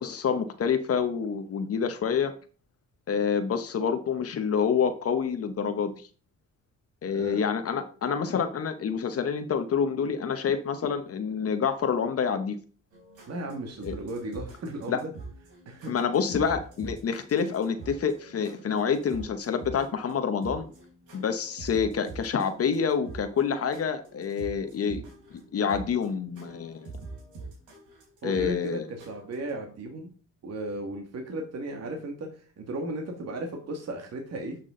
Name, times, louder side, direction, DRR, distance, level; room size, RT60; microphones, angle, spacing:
voice 1, 0.0-2.3 3.1-6.1 7.0-12.6 13.8-13.9 14.9-15.0 15.9-20.7 21.1-25.0 25.3-26.9 28.2-28.8, left 6 dB, 50° left, 8 dB, 1.0 m, -27 dB
voice 2, 7.1-7.4 13.3-15.1 15.7-15.9 28.2-30.1 30.4-34.6, right 2 dB, 55° right, 2 dB, 2.1 m, -35 dB
sound 1, 12.9-29.5, right 3 dB, 90° right, 3.7 m, -45 dB
11.0 x 6.1 x 3.8 m, 0.39 s
cardioid pair, 90°, 30 cm